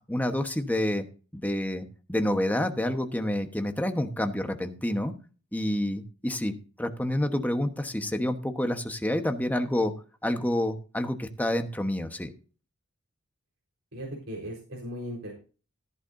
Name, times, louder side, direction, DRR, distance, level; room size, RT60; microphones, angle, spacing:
voice 1, 0.1-1.0 1.3-5.1 5.5-9.9 10.2-12.3, left 1 dB, 10° left, 6 dB, 1.1 m, -28 dB
voice 2, 13.9-15.3, equal, 70° right, -3 dB, 4.2 m, -37 dB
14.5 x 10.5 x 2.7 m, 0.36 s
head